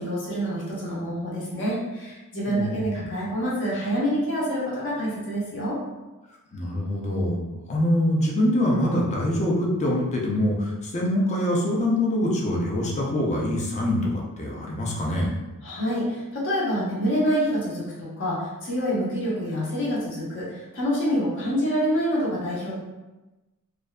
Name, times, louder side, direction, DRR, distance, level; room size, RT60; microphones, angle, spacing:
voice 1, 0.0-5.8 15.6-22.8, equal, 60° left, -6 dB, 0.8 m, -27 dB
voice 2, 2.5-2.8 6.5-7.4 7.7-15.3, left 1 dB, 30° left, -3 dB, 0.5 m, -24 dB
2.5 x 2.3 x 2.2 m, 1.1 s
head